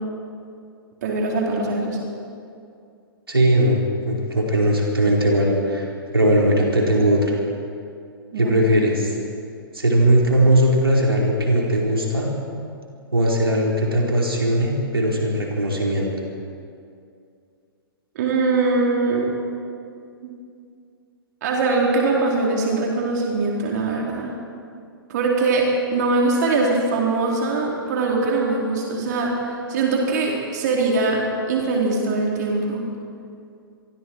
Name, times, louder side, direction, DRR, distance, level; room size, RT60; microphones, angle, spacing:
voice 1, 1.0-2.0 8.3-8.5 18.2-19.3 21.4-24.3 25.1-32.8, right 3 dB, 50° right, -2 dB, 4.1 m, -22 dB
voice 2, 3.3-7.4 8.4-9.1 9.7-12.3 13.1-16.1, right 1 dB, 80° right, -2 dB, 4.7 m, -19 dB
27.5 x 23.0 x 4.8 m, 2.4 s
figure-of-eight pair, 115°, 12 cm